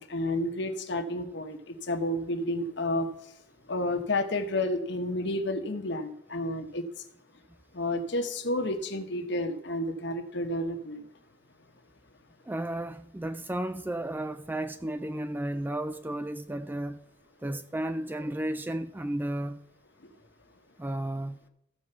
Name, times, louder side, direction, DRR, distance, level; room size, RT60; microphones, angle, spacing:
voice 1, 0.0-3.1 3.7-7.0 7.7-11.1, left 1 dB, 60° left, 1.2 m, -31 dB
voice 2, 12.5-17.0 17.4-19.6 20.8-21.4, right 1 dB, 10° right, 0.3 m, -33 dB
14.0 x 4.7 x 6.8 m
head